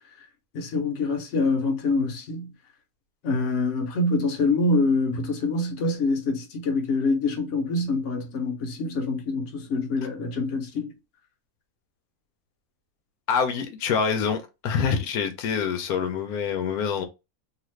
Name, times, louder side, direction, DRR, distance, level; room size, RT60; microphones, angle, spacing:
voice 1, 0.5-2.5 3.2-10.9, left 3 dB, 60° left, 1.1 m, -25 dB
voice 2, 13.3-17.1, left 6 dB, 85° left, 1.1 m, -26 dB
2.8 x 2.4 x 3.0 m
omnidirectional pair, 1.5 m